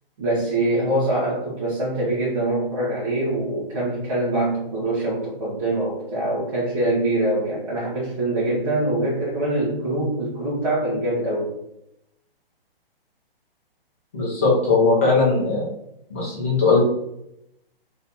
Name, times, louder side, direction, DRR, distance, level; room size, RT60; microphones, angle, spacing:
voice 1, 0.2-11.5, right 1 dB, 35° right, -9 dB, 0.9 m, -24 dB
voice 2, 14.1-15.7 16.1-16.8, left 3 dB, 15° left, -7 dB, 0.5 m, -19 dB
2.8 x 2.8 x 3.4 m, 0.82 s
hypercardioid pair, 175°, 30 cm